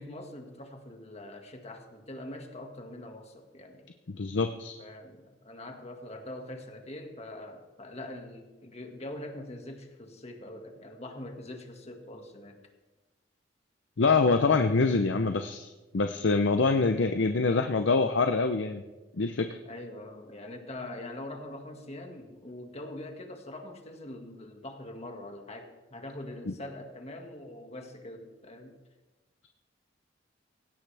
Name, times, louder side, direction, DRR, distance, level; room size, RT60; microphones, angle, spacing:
voice 1, 0.0-3.9 4.8-12.6 19.6-28.8, left 1 dB, 35° left, 4 dB, 1.9 m, -43 dB
voice 2, 4.1-4.8 14.0-15.7 15.9-18.8 19.2-19.6, left 4 dB, 75° left, 7 dB, 0.7 m, -25 dB
18.5 x 16.5 x 3.4 m, 1.2 s
head